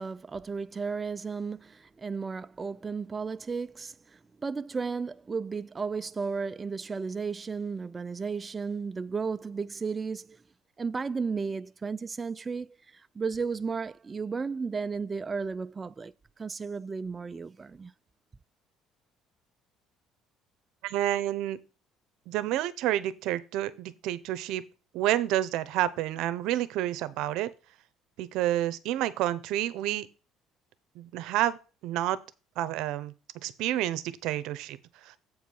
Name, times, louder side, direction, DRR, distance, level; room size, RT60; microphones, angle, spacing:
voice 1, 0.0-10.4 10.8-17.9, right 5 dB, 25° right, 0.3 m, -34 dB
voice 2, 20.8-21.6 22.3-24.6 24.9-27.5 28.2-30.1 31.0-31.6 31.8-32.2 32.6-33.1 33.4-35.2, right 13 dB, 80° right, 0.8 m, -29 dB
8.1 x 4.7 x 5.4 m
cardioid pair, 125°, 0 cm